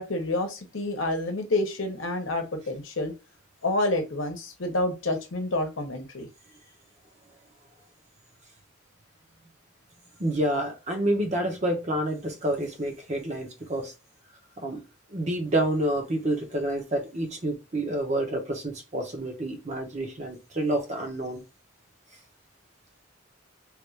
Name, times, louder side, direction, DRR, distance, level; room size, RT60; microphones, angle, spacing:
voice 1, 0.0-3.1 3.6-6.3, left 2 dB, 70° left, 0.9 m, -28 dB
voice 2, 10.2-13.9 14.6-14.8 15.1-21.4, right 1 dB, 35° right, 0.7 m, -28 dB
3.2 x 2.5 x 3.1 m
head